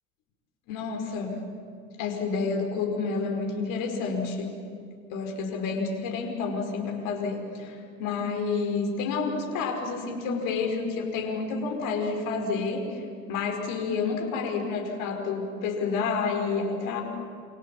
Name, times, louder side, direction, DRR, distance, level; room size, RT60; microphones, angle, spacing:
voice 1, 0.7-1.4 2.0-4.5 5.1-13.0 13.3-17.0, left 4 dB, 50° left, 3 dB, 5.2 m, -29 dB
28.0 x 27.0 x 7.4 m, 2.5 s
figure-of-eight pair, 75°, 41 cm